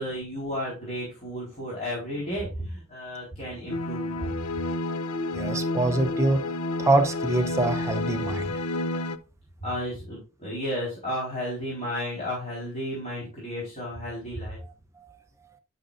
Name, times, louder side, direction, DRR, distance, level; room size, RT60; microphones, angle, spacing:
voice 1, 0.0-4.3 9.6-14.6, equal, 30° left, 3.8 m, -33 dB
sound 1, 3.7-9.2, left 2 dB, 85° left, 0.6 m, -30 dB
voice 2, 5.3-6.5 6.8-8.6, right 2 dB, 15° right, 0.5 m, -24 dB
11.0 x 6.1 x 2.5 m
head